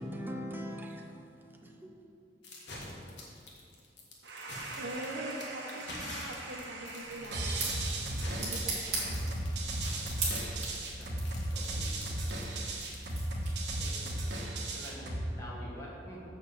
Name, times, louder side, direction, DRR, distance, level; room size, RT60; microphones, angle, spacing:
voice 1, 0.0-2.0, equal, 10° right, 0.7 m, -41 dB
sound 1, 2.4-13.7, left 2 dB, 70° left, 1.7 m, -46 dB
voice 2, 4.2-8.0 8.4-9.4, right 2 dB, 90° right, 0.9 m, -41 dB
sound 2, 7.0-13.9, right 3 dB, 40° right, 2.4 m, -40 dB
sound 3, 7.3-15.3, right 1 dB, 70° right, 1.4 m, -35 dB
voice 3, 11.5-11.9 13.8-14.1 14.4-16.2, equal, 15° left, 1.7 m, -47 dB
6.5 x 6.2 x 7.2 m
head